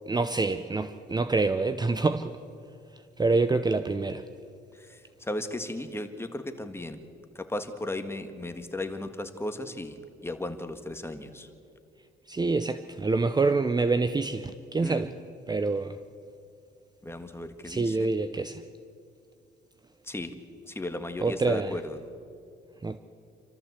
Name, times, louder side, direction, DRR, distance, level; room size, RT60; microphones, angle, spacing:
voice 1, 0.1-2.4 3.2-4.2 12.3-15.1 15.5-16.0 17.6-18.6 21.2-21.8 22.8-23.0, right 3 dB, 20° right, 0.7 m, -26 dB
voice 2, 4.7-7.0 7.3-10.0 10.2-11.5 14.8-15.1 17.0-18.1 20.0-20.3 20.7-22.0, left 2 dB, 10° left, 1.6 m, -35 dB
27.0 x 13.5 x 8.2 m
cardioid pair, 90°, 20 cm